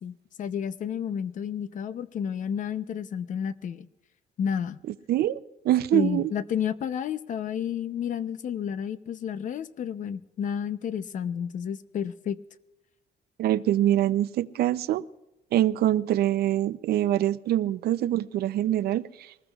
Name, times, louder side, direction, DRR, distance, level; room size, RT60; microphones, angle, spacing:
voice 1, 0.0-3.9 4.4-4.8 5.9-12.4, left 8 dB, 50° left, 0.7 m, -31 dB
voice 2, 5.1-6.3 13.4-15.0 15.5-19.1, right 13 dB, 75° right, 0.5 m, -24 dB
23.5 x 20.0 x 2.4 m
cardioid pair, 150°, 17 cm